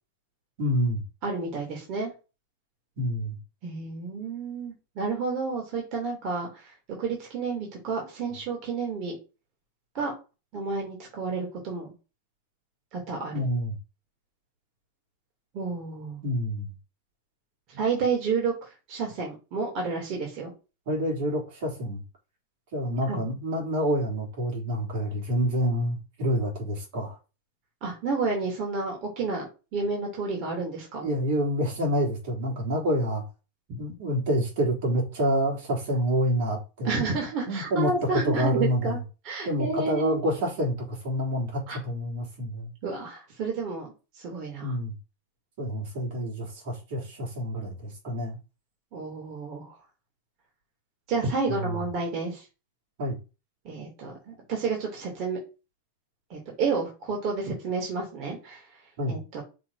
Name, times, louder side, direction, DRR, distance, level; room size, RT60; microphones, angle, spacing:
voice 1, 0.6-1.0 3.0-3.4 8.3-8.4 13.3-13.8 16.2-16.7 20.9-22.0 22.7-27.2 31.0-33.3 33.8-37.0 37.5-39.0 39.5-42.7 44.6-44.9 45.6-48.4 51.5-51.8 53.0-53.2 59.0-59.2, equal, 60° right, 3.6 m, -28 dB
voice 2, 1.2-2.1 3.6-6.7 7.0-9.1 9.9-10.1 10.5-11.9 12.9-13.5 15.5-16.2 17.7-18.5 18.9-20.5 23.1-23.2 27.8-29.5 29.7-31.1 36.8-39.0 39.2-40.2 41.7-41.8 42.8-44.8 48.9-49.7 51.1-52.4 53.6-55.4 56.3-58.6 59.1-59.4, right 4 dB, 45° right, 2.9 m, -30 dB
6.1 x 3.4 x 4.9 m
supercardioid pair, 140°, 0 cm